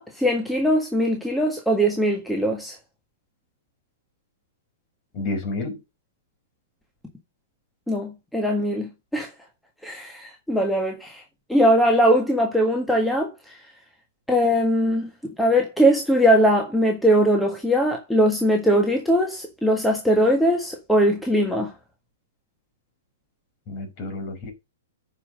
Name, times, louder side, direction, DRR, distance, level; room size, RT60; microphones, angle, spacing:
voice 1, 0.0-2.7 7.9-9.3 9.8-11.2 11.5-13.3 14.3-15.1 15.4-21.7, equal, 5° left, 1.7 m, -20 dB
voice 2, 5.1-5.8 23.7-24.5, left 2 dB, 40° left, 4.9 m, -30 dB
9.7 x 5.7 x 5.1 m
figure-of-eight pair, 115°, 0 cm